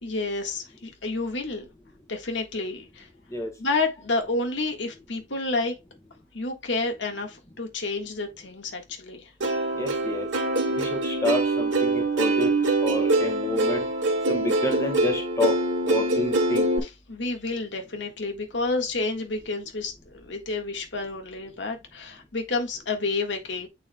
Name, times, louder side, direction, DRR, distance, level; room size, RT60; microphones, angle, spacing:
voice 1, 0.0-1.7 2.1-3.1 3.6-5.7 6.3-9.3 17.1-23.7, left 3 dB, 70° left, 1.6 m, -30 dB
Plucked string instrument, 9.4-16.8, right 2 dB, 75° right, 1.8 m, -24 dB
voice 2, 9.7-10.3 10.7-13.9 14.3-15.6 15.9-16.7, left 2 dB, 15° left, 1.6 m, -29 dB
9.1 x 4.9 x 2.3 m
head